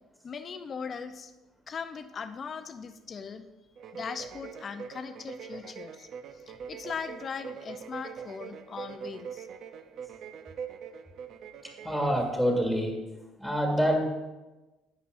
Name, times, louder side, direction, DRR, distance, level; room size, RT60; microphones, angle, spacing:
voice 1, 0.2-1.3 1.7-3.4 3.9-6.1 6.5-9.5, left 6 dB, 35° left, 9 dB, 0.6 m, -39 dB
sound 1, 3.8-12.3, right 7 dB, 55° right, 0.5 m, -43 dB
voice 2, 11.6-13.0 13.4-14.0, equal, 5° right, 1 dB, 1.9 m, -26 dB
11.0 x 8.3 x 2.6 m, 1.1 s
cardioid pair, 130°, 0 cm